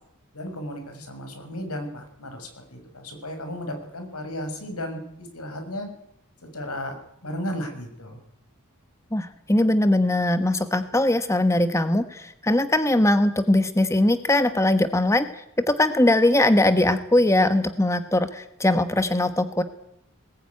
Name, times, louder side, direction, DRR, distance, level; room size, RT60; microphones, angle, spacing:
voice 1, 0.3-5.9 6.4-7.0 7.2-8.2, equal, 85° left, 5 dB, 6.4 m, -34 dB
voice 2, 9.1-19.6, left 1 dB, 15° left, 9 dB, 1.2 m, -21 dB
21.0 x 20.0 x 9.6 m, 0.77 s
head